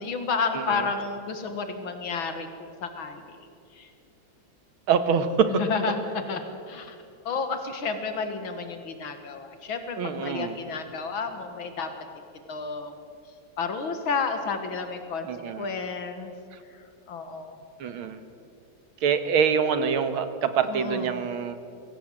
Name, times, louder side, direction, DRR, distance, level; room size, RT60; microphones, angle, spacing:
voice 1, 0.0-3.4 3.7-3.9 5.5-6.4 6.7-7.0 7.3-11.9 12.5-13.0 13.6-15.3 15.6-16.3 17.1-17.6 20.7-21.3, left 5 dB, 75° left, 7 dB, 2.3 m, -31 dB
voice 2, 0.5-0.9 4.9-5.6 10.0-10.6 15.2-15.7 16.5-16.6 17.8-18.2 19.0-21.6, right 7 dB, 80° right, 10 dB, 2.0 m, -25 dB
23.5 x 16.5 x 7.8 m, 2.5 s
omnidirectional pair, 2.3 m